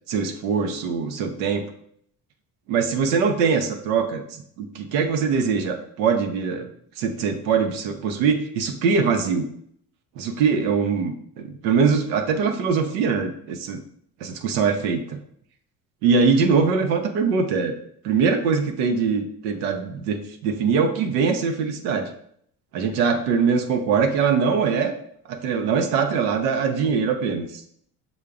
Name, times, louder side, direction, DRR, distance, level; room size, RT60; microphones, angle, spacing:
voice 1, 0.1-1.7 2.7-6.7 7.0-9.5 10.2-13.8 14.2-15.2 16.0-17.7 18.0-22.1 22.7-24.9 25.3-27.6, right 5 dB, 85° right, 5 dB, 0.7 m, -22 dB
6.5 x 2.2 x 3.5 m, 0.67 s
hypercardioid pair, 60°, 50 cm